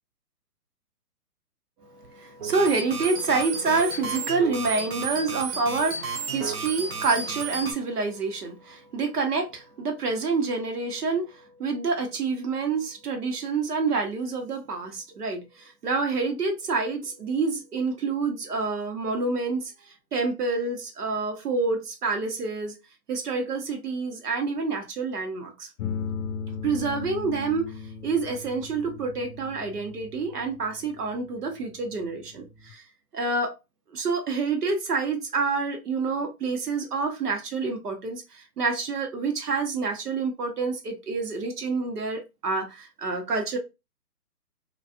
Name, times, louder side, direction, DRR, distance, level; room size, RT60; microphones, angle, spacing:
voice 1, 1.9-19.6 20.1-22.7 23.1-25.7 26.6-27.7 28.0-32.8 33.1-33.6 33.9-43.6, right 4 dB, 75° right, 1.0 m, -28 dB
sound 1, 2.4-7.7, right 5 dB, 40° right, 0.7 m, -33 dB
sound 2, 25.8-32.7, left 6 dB, 60° left, 0.6 m, -38 dB
2.4 x 2.3 x 2.5 m
hypercardioid pair, 140°, 47 cm